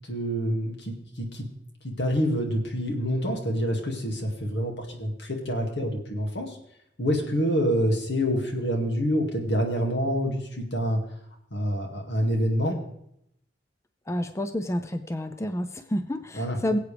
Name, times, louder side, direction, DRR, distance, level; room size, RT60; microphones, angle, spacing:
voice 1, 0.1-1.5 2.0-6.6 7.0-11.0 11.5-12.8 16.3-16.6, equal, 70° left, 2 dB, 2.3 m, -27 dB
voice 2, 14.1-16.8, left 1 dB, 15° left, 8 dB, 0.5 m, -29 dB
22.0 x 8.2 x 3.4 m, 0.77 s
head